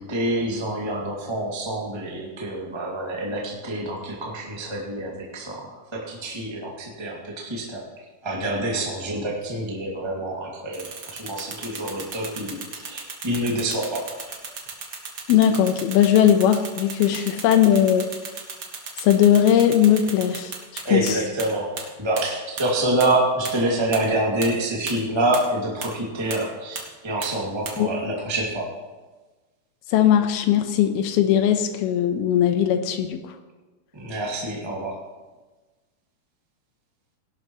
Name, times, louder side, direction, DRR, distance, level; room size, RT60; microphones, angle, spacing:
voice 1, 0.0-7.9 8.2-14.1 17.1-17.2 20.8-28.7 33.9-35.0, right 1 dB, 10° right, -3 dB, 1.3 m, -27 dB
sound 1, 10.7-21.1 21.4-21.5 21.8-21.9 22.2-22.3 22.6-22.7 23.0-23.1 23.4-23.5 23.9-24.0 24.4-24.5 24.9-25.0 25.3-25.4 25.8-25.9 26.3-26.4 26.8-26.9 27.2-27.3 27.7-27.8, right 5 dB, 60° right, 1.2 m, -34 dB
voice 2, 15.3-18.1 19.0-21.2 27.8-27.9 29.9-33.2, left 10 dB, 80° left, 7 dB, 2.8 m, -19 dB
18.5 x 11.5 x 3.1 m, 1.2 s
omnidirectional pair, 4.5 m